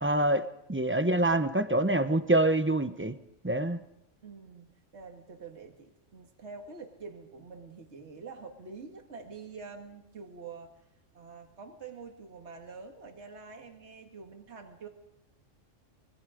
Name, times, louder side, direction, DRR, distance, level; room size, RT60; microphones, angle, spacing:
voice 1, 0.0-0.4 0.7-3.2 3.4-3.8, right 1 dB, 10° right, 10 dB, 0.7 m, -25 dB
voice 2, 4.2-10.7 11.1-14.9, right 4 dB, 60° right, 3 dB, 2.2 m, -46 dB
25.0 x 22.0 x 5.1 m, 0.86 s
omnidirectional pair, 1.3 m